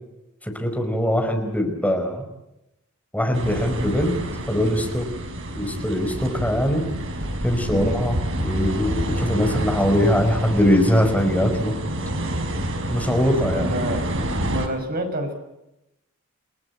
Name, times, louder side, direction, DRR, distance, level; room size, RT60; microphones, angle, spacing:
voice 1, 0.4-2.2 3.1-4.1 4.5-5.1 5.5-6.9 7.4-11.7 12.9-13.7, equal, 5° left, 4 dB, 5.1 m, -22 dB
sound 1, 3.3-14.7, right 1 dB, 65° right, 5.0 m, -28 dB
voice 2, 7.7-8.0 13.5-14.1 14.5-15.3, right 1 dB, 45° right, 5 dB, 6.3 m, -28 dB
29.5 x 18.5 x 8.7 m, 0.90 s
head